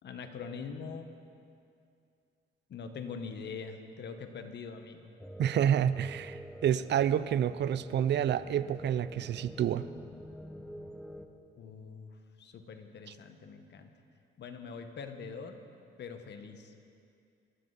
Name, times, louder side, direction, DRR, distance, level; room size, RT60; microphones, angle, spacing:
voice 1, 0.0-1.1 2.7-5.1 11.6-13.9 14.4-15.6 16.0-16.7, left 5 dB, 60° left, 7 dB, 1.5 m, -43 dB
sound 1, 5.2-11.3, equal, 5° left, 1.2 m, -47 dB
voice 2, 5.4-9.8, right 9 dB, 60° right, 15 dB, 0.6 m, -28 dB
25.0 x 13.5 x 4.2 m, 2.4 s
cardioid pair, 90°, 20 cm